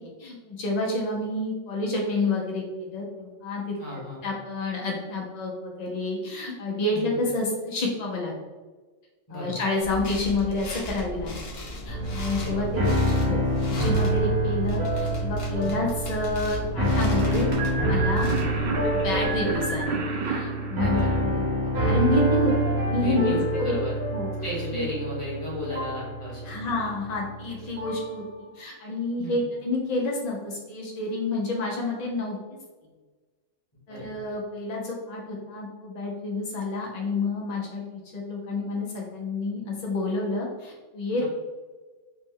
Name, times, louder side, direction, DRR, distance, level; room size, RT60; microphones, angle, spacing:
voice 1, 0.0-8.3 9.3-11.4 11.8-13.4 13.7-17.5 17.8-18.3 18.9-20.0 20.2-21.5 21.8-23.7 24.1-24.3 24.7-24.8 26.4-32.4 33.9-41.2, left 2 dB, 80° left, -1 dB, 0.3 m, -29 dB
voice 2, 3.8-4.2 6.9-7.2 9.3-9.6 12.3-12.7 15.6-15.8 18.2-18.5 20.8-21.2 23.0-24.0 24.4-26.7 29.2-29.4 33.9-34.1 41.2-41.3, equal, 25° left, -5 dB, 1.0 m, -34 dB
sound 1, 9.8-20.0, equal, 55° left, 0.9 m, -37 dB
sound 2, 11.9-28.1, right 1 dB, 55° right, 1.1 m, -26 dB
sound 3, 17.2-21.7, right 4 dB, 80° right, 0.4 m, -32 dB
3.1 x 2.0 x 3.5 m, 1.3 s
omnidirectional pair, 1.3 m